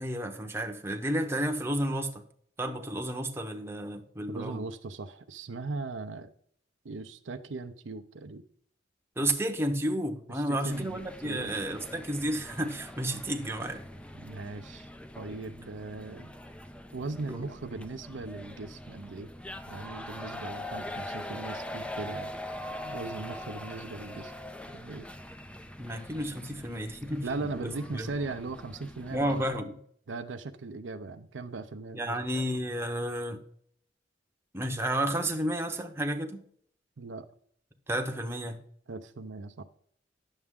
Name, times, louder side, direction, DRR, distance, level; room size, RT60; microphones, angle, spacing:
voice 1, 0.0-2.1 2.6-4.7 9.2-13.8 17.3-17.5 25.8-28.1 29.1-29.8 31.9-33.4 34.5-36.4 37.9-38.6, right 1 dB, 15° right, 0.8 m, -32 dB
voice 2, 4.3-6.3 6.8-8.4 10.3-11.0 11.2-11.5 14.1-14.9 15.2-16.3 16.9-19.3 19.7-22.3 22.8-24.3 24.7-25.1 27.2-29.4 30.1-32.2 37.0-37.3 38.9-39.6, right 3 dB, 75° right, 0.6 m, -39 dB
sound 1, 10.7-29.6, left 1 dB, 5° left, 0.4 m, -43 dB
9.7 x 7.0 x 3.6 m
head